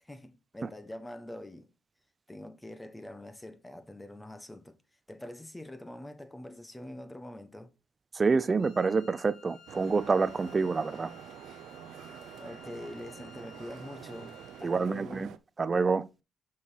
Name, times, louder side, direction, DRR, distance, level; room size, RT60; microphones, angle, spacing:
voice 1, 0.0-1.7 2.3-4.8 5.1-7.7 12.4-15.2, left 1 dB, 10° left, 1.2 m, -44 dB
voice 2, 8.1-11.1 14.6-15.3 15.6-16.1, right 4 dB, 30° right, 0.6 m, -27 dB
Wind instrument woodwind instrument, 8.6-14.9, left 7 dB, 65° left, 1.3 m, -55 dB
sound 1, 9.7-15.4, right 10 dB, 80° right, 0.6 m, -47 dB
6.3 x 5.6 x 4.7 m
cardioid pair, 90°, 0 cm